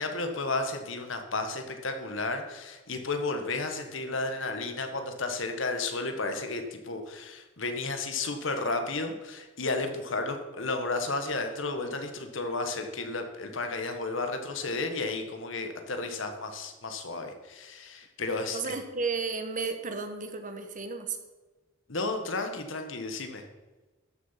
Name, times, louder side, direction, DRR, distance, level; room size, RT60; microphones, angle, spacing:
voice 1, 0.0-18.7 21.9-23.4, left 3 dB, 70° left, 6 dB, 1.5 m, -33 dB
voice 2, 18.5-21.2, right 4 dB, 40° right, 7 dB, 1.3 m, -33 dB
13.0 x 6.7 x 5.8 m, 1.2 s
head